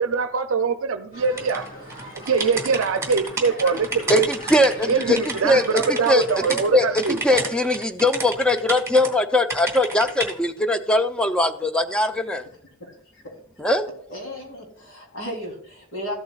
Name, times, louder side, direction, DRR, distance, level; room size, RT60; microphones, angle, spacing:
voice 1, 0.0-1.6 2.1-4.3 4.9-7.2, right 5 dB, 80° right, 0.5 m, -23 dB
sound 1, 1.1-7.1, left 1 dB, 40° left, 4.5 m, -38 dB
sound 2, 1.4-6.6 7.0-9.1 9.5-10.3, right 3 dB, 15° right, 1.9 m, -31 dB
voice 2, 4.1-12.5 13.6-13.9, left 1 dB, 5° left, 0.5 m, -21 dB
voice 3, 14.1-16.1, equal, 75° left, 3.4 m, -34 dB
14.0 x 8.2 x 2.4 m
head